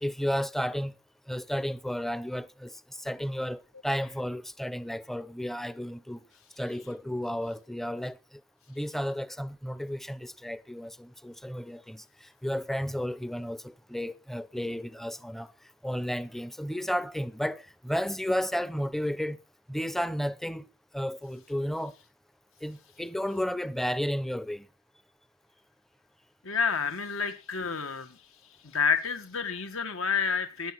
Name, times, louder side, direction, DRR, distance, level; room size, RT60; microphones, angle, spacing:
voice 1, 0.0-1.0 1.3-6.2 6.6-8.4 8.7-15.5 15.8-19.4 19.7-20.6 20.9-22.0 22.6-24.7, equal, ahead, 0.7 m, -33 dB
voice 2, 26.4-28.2 28.6-30.7, left 6 dB, 70° left, 1.7 m, -29 dB
16.0 x 10.0 x 6.0 m
head